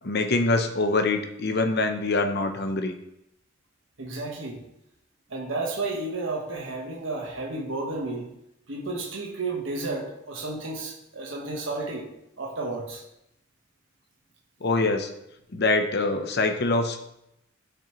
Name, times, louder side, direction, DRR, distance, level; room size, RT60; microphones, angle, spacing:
voice 1, 0.0-2.9 14.6-15.1 15.5-17.0, left 2 dB, 55° left, 6 dB, 0.9 m, -24 dB
voice 2, 4.0-4.6 5.3-8.3 8.7-12.1 12.4-13.0, right 2 dB, 70° right, -1 dB, 1.4 m, -32 dB
13.0 x 5.5 x 3.1 m, 0.82 s
head